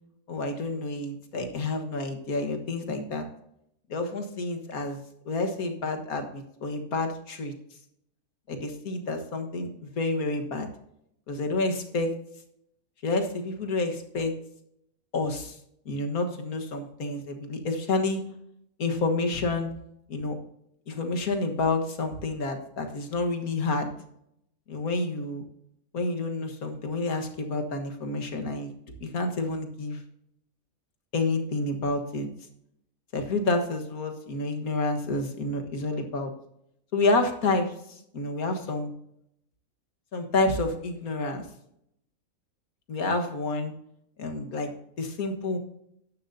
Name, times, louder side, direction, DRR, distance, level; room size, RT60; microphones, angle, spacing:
voice 1, 0.3-3.3 3.9-5.0 5.3-7.5 8.5-9.7 9.9-10.7 11.3-12.1 13.0-14.3 15.1-15.6 15.9-18.2 18.8-19.7 20.1-20.4 20.9-23.9 24.7-25.4 25.9-28.7 29.0-30.0 31.1-32.3 33.1-36.3 36.9-38.9 40.1-41.4 42.9-43.7 44.2-45.6, left 2 dB, 80° left, 5 dB, 1.9 m, -29 dB
13.5 x 10.5 x 2.7 m, 0.75 s
omnidirectional pair, 1.5 m